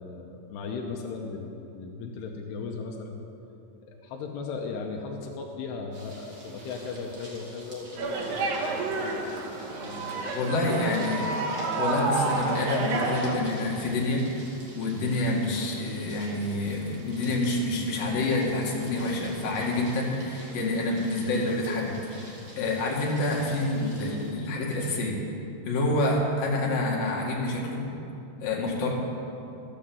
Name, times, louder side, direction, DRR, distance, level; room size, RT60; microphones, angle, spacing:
voice 1, 0.0-3.2 3.9-9.3 9.8-11.0, left 4 dB, 90° left, 1 dB, 3.0 m, -37 dB
sound 1, 5.9-24.3, right 1 dB, 30° right, 1.9 m, -49 dB
sound 2, 8.0-13.4, right 3 dB, 75° right, 3.7 m, -29 dB
voice 2, 10.3-11.3 11.8-14.3 14.7-25.2 25.6-27.8 28.4-28.9, left 2 dB, 60° left, -3 dB, 3.6 m, -27 dB
13.5 x 8.5 x 7.7 m, 2.8 s
omnidirectional pair, 4.7 m